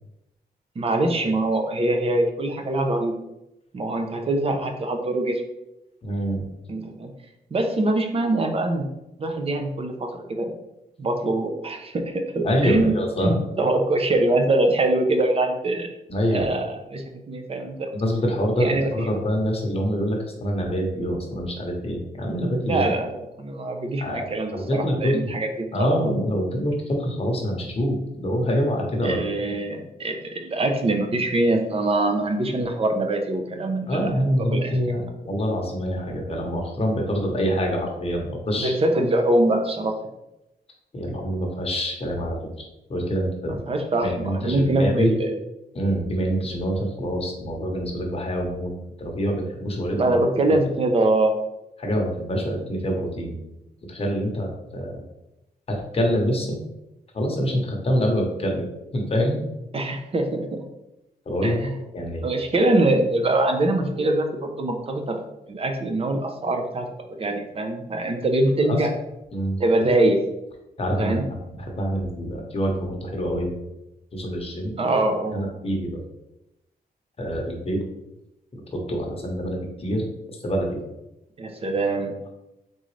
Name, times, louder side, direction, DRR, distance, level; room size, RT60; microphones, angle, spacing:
voice 1, 0.8-3.1 3.7-5.4 6.7-7.1 7.5-8.9 9.2-10.5 11.0-12.9 13.2-15.9 16.3-17.9 18.6-18.9 22.6-23.0 23.4-25.7 29.0-34.8 38.6-39.9 43.5-45.3 50.0-51.3 59.7-60.6 61.4-61.8 62.2-65.1 65.5-66.9 67.2-68.9 69.6-70.2 71.0-71.2 74.8-75.5 81.4-82.1, right 2 dB, 35° right, 4 dB, 0.6 m, -23 dB
voice 2, 6.0-6.4 12.4-13.4 16.1-16.5 17.9-23.0 24.0-25.2 25.7-29.2 33.9-38.7 40.9-42.5 42.9-43.6 44.0-45.1 45.7-48.7 49.0-50.1 51.8-53.4 53.9-55.0 55.7-56.6 57.1-58.7 58.9-59.4 61.3-61.6 61.9-62.3 68.6-68.8 69.3-69.6 70.8-71.1 71.6-73.6 74.1-74.8 75.3-76.0 77.2-77.8 78.5-80.8, equal, 35° left, 0 dB, 1.0 m, -25 dB
3.9 x 3.8 x 3.2 m, 0.91 s
wide cardioid pair, 145°, 17 cm